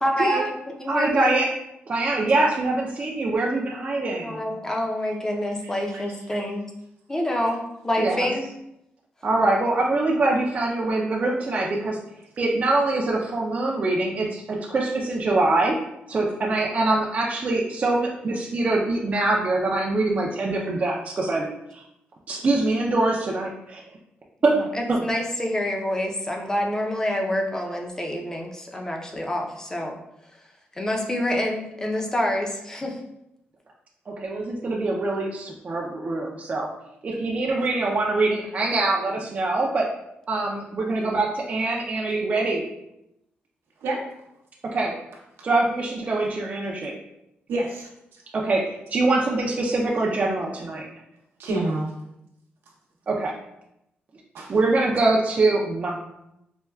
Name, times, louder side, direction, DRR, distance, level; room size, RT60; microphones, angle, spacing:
voice 1, 0.0-1.4 4.2-6.6 7.1-8.5 24.6-30.0 30.8-33.0, left 1 dB, 15° left, 1 dB, 0.5 m, -27 dB
voice 2, 0.9-1.5 1.9-4.4 8.0-8.2 9.2-12.0 12.4-15.8 16.1-21.5 21.7-21.8 22.3-23.8 24.4-24.5 24.9-25.0 34.1-36.7 37.0-39.9 40.3-42.6 44.7-44.9 45.4-46.9 48.3-50.9 53.1-53.3 54.5-55.9, right 2 dB, 40° right, -2 dB, 0.4 m, -24 dB
voice 3, 5.6-6.1 43.8-44.0 47.5-48.2 51.4-51.9 54.3-54.5, right 2 dB, 90° right, -2 dB, 0.8 m, -29 dB
4.3 x 2.2 x 2.2 m, 0.84 s
cardioid pair, 105°, 4 cm